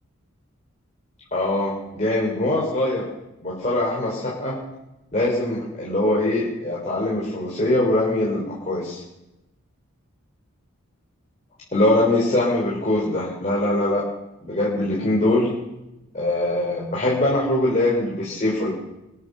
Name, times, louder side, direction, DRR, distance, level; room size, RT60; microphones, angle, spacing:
voice 1, 1.3-3.1 3.4-4.5 5.1-9.0 11.7-14.0 14.4-15.5 16.1-18.7, left 1 dB, 35° left, -5 dB, 3.6 m, -22 dB
23.0 x 8.8 x 6.7 m, 0.94 s
head